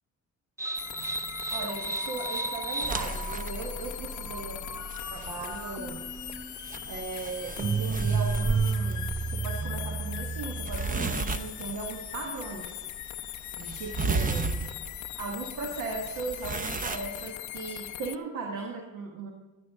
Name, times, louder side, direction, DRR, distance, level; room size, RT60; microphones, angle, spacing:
sound 1, 0.6-11.2, right 4 dB, 10° right, 0.3 m, -33 dB
sound 2, 0.7-18.2, left 14 dB, 70° left, 0.5 m, -40 dB
voice 1, 1.5-4.7 5.1-6.1 6.9-12.9 13.6-14.7 15.2-19.3, right 3 dB, 85° right, 2 dB, 1.4 m, -37 dB
sound 3, 2.8-17.3, right 3 dB, 25° right, 0.7 m, -36 dB
13.0 x 9.8 x 3.6 m, 1.2 s
cardioid pair, 90°, 30 cm